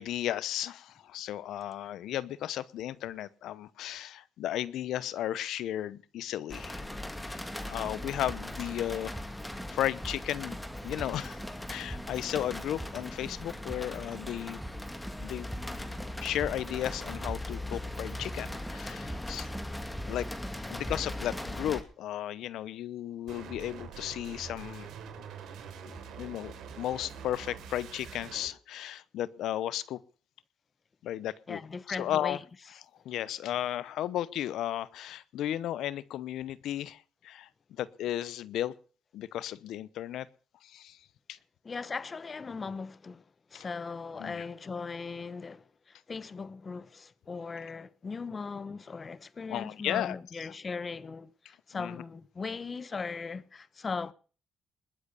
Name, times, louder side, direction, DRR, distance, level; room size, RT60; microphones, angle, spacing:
voice 1, 0.0-6.8 7.2-7.4 7.7-9.3 9.7-10.6 10.8-11.4 11.7-14.6 15.2-15.5 16.2-19.5 20.1-20.3 20.7-24.9 25.9-30.0 31.0-31.6 31.9-32.4 33.0-38.7 39.1-40.3 40.6-41.0 41.3-41.4 43.5-43.6 44.2-44.4 49.5-50.2 51.7-52.0, left 12 dB, 80° left, 0.8 m, -34 dB
sound 1, 6.5-21.8, left 1 dB, 10° left, 2.3 m, -39 dB
Keyboard (musical), 7.5-21.8, right 1 dB, 5° right, 1.2 m, -47 dB
sound 2, 23.3-28.5, right 6 dB, 80° right, 3.4 m, -45 dB
voice 2, 31.5-32.4 41.6-43.2 43.5-54.1, left 4 dB, 35° left, 1.0 m, -38 dB
20.5 x 8.1 x 6.8 m
cardioid pair, 90°, 0 cm